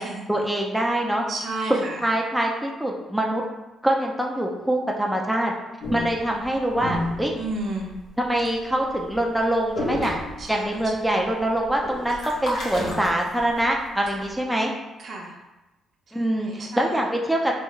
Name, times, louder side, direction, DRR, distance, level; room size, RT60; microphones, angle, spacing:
voice 1, 0.3-1.2 1.7-3.4 3.8-5.5 5.9-7.3 8.2-10.2 10.5-14.7 16.1-17.6, right 1 dB, 5° right, -1 dB, 0.4 m, -24 dB
voice 2, 1.3-2.0 7.3-7.9 10.4-10.7 15.0-15.3 16.1-16.8, right 2 dB, 55° right, -1 dB, 0.7 m, -32 dB
sound 1, 5.8-8.1 8.4-8.7 9.0-9.2 9.4-9.5 9.7-10.9 11.2-13.6, left 1 dB, 75° left, 1.0 m, -30 dB
3.4 x 2.3 x 3.0 m, 1.0 s
cardioid pair, 90°, 0 cm